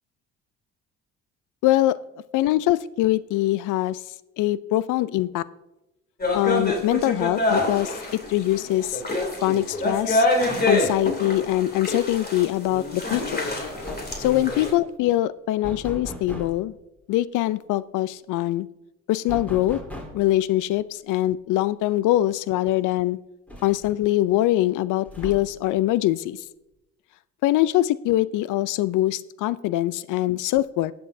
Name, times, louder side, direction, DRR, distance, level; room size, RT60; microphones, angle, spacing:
voice 1, 1.6-2.0 2.3-4.0 4.4-5.4 6.3-9.0 9.4-10.3 10.7-13.4 14.2-16.7 17.1-18.7 19.1-19.8 20.1-23.2 23.6-26.4 27.4-30.9, left 15 dB, 60° left, 18 dB, 0.5 m, -23 dB
sound 1, 6.2-14.7, left 1 dB, 25° left, 2.8 m, -26 dB
sound 2, 13.6-14.3 15.6-16.6 19.3-20.3 21.9-22.0 22.4-22.5 23.5-24.1 25.1-25.7, equal, 5° left, 3.5 m, -38 dB
19.5 x 7.0 x 2.7 m, 0.96 s
hypercardioid pair, 65°, 35 cm